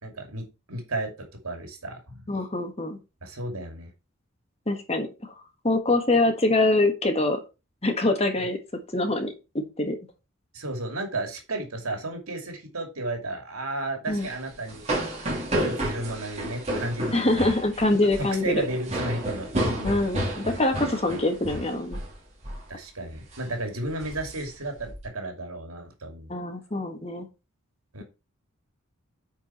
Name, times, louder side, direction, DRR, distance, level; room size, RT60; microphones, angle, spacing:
voice 1, 0.0-2.3 3.2-3.9 10.5-15.0 15.6-17.4 18.2-19.9 22.7-26.3 27.9-28.0, right 2 dB, 85° right, 4 dB, 2.5 m, -33 dB
voice 2, 2.3-3.0 4.7-5.3 5.6-7.4 7.8-8.6 8.9-9.3 9.8-10.0 14.1-14.3 17.1-18.7 19.8-22.0 26.3-27.3, left 2 dB, 30° left, 5 dB, 1.5 m, -24 dB
sound 1, 14.1-22.2 22.4-22.7 23.1-23.4 23.9-25.0, right 1 dB, 30° right, 2.6 m, -31 dB
9.2 x 4.7 x 4.4 m, 0.28 s
head